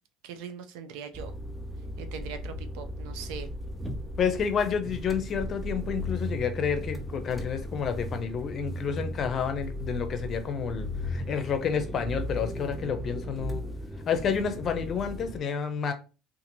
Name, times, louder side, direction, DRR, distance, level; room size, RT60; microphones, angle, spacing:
voice 1, 0.2-1.3 2.0-3.5, right 7 dB, 85° right, 0.4 m, -41 dB
sound 1, 1.1-15.4, equal, 10° right, 0.6 m, -36 dB
voice 2, 4.2-13.6 14.1-15.9, left 7 dB, 45° left, 0.6 m, -30 dB
2.8 x 2.5 x 2.6 m
supercardioid pair, 100°, 0 cm